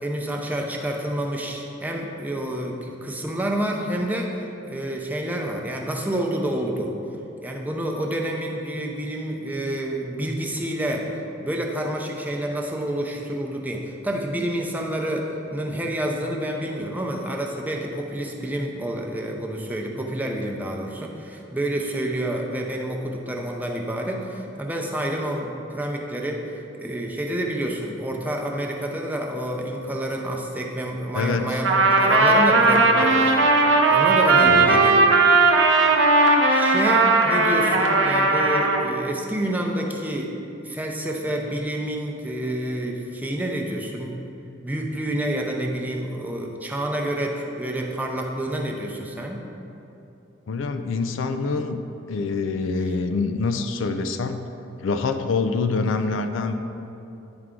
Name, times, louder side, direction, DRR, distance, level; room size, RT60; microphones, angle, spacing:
voice 1, 0.0-6.9 7.4-11.1 11.4-26.4 26.8-33.4 33.9-35.1 36.5-40.3 40.6-44.2 44.6-49.4, right 1 dB, 10° right, 0 dB, 0.6 m, -28 dB
voice 2, 31.1-31.6 34.5-34.8 50.5-51.8 52.1-54.4 54.8-56.5, left 4 dB, 75° left, 7 dB, 0.4 m, -25 dB
Trumpet, 31.6-38.9, right 3 dB, 65° right, 0.7 m, -17 dB
9.7 x 4.6 x 3.8 m, 2.9 s
head